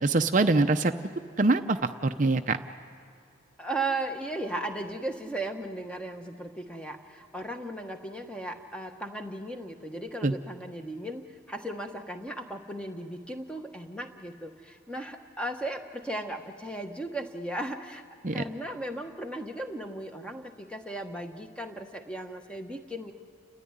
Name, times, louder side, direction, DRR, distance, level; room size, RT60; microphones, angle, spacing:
voice 1, 0.0-0.9 1.4-2.6 10.2-10.3 18.2-18.4, right 3 dB, 40° right, 7 dB, 0.6 m, -23 dB
voice 2, 3.6-23.1, right 1 dB, 5° left, 4 dB, 1.2 m, -36 dB
29.5 x 14.0 x 9.9 m, 2.4 s
head